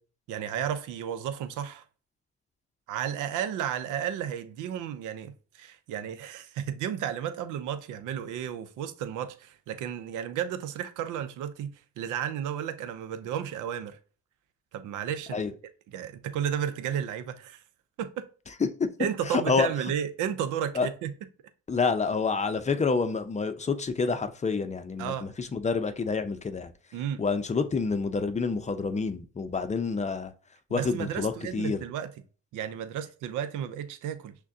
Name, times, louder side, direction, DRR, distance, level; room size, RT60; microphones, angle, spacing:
voice 1, 0.3-1.8 2.9-14.0 14.7-15.4 15.9-17.6 18.0-18.3 19.0-21.1 25.0-25.3 26.9-27.2 30.7-32.1 32.5-34.4, right 9 dB, 90° right, 0.6 m, -33 dB
voice 2, 19.3-19.7 20.7-20.9 21.7-26.7 27.2-30.3 30.7-31.8, left 4 dB, 25° left, 0.5 m, -28 dB
6.0 x 2.2 x 2.7 m
cardioid pair, 90°, 30 cm